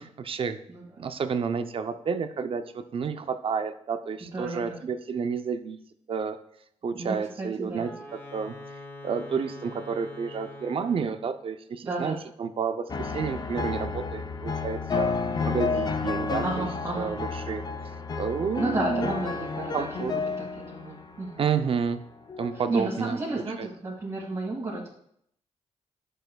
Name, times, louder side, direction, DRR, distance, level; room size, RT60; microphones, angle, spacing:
voice 1, 0.0-0.6 1.0-5.8 6.1-6.4 6.8-7.9 8.3-8.6 9.0-15.1 15.4-16.6 17.0-17.7 18.2-19.1 19.7-20.1 21.4-22.0 22.4-23.2 23.6-23.7, right 6 dB, 50° right, 9 dB, 0.5 m, -30 dB
voice 2, 0.7-1.1 4.2-4.8 6.9-8.0 11.8-12.2 16.4-17.1 18.6-21.4 22.5-24.9, right 2 dB, 30° right, -7 dB, 1.9 m, -33 dB
Wind instrument woodwind instrument, 7.7-11.4, left 2 dB, 20° left, 1.8 m, -44 dB
sound 1, 12.9-21.5 22.3-22.8, left 4 dB, 35° left, 0.5 m, -31 dB
10.0 x 6.6 x 2.3 m, 0.70 s
cardioid pair, 110°, 12 cm